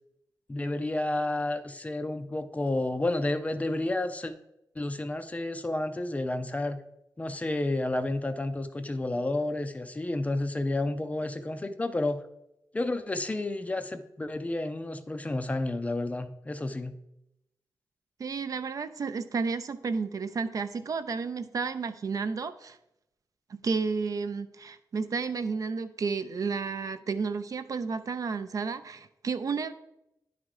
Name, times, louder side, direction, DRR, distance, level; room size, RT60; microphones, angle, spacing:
voice 1, 0.5-4.3 4.8-6.8 7.2-12.2 12.7-17.0, left 2 dB, 20° left, 10 dB, 0.4 m, -31 dB
voice 2, 18.2-22.8 23.5-29.7, right 5 dB, 55° right, 11 dB, 0.4 m, -32 dB
10.5 x 3.7 x 4.8 m, 0.85 s
wide cardioid pair, 170°, 7 cm